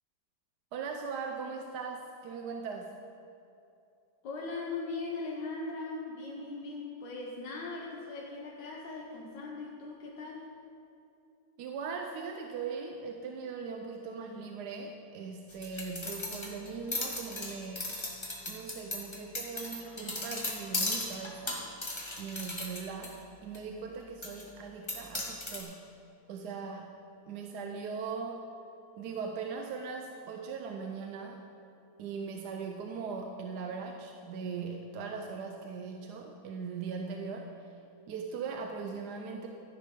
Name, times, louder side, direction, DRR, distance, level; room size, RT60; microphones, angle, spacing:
voice 1, 0.7-2.9 11.6-17.9 18.5-21.6 22.2-23.2 23.4-25.8 26.3-26.9 27.3-28.4 29.0-31.4 32.0-37.7 38.1-39.5, right 5 dB, 75° right, 3 dB, 1.2 m, -39 dB
voice 2, 4.2-10.5, left 3 dB, 85° left, -2 dB, 1.7 m, -39 dB
sound 1, 15.5-23.1 23.5-23.6 24.2-24.4 24.9-25.6, left 2 dB, 20° left, 1.1 m, -36 dB
13.0 x 10.5 x 3.8 m, 2.7 s
omnidirectional pair, 1.9 m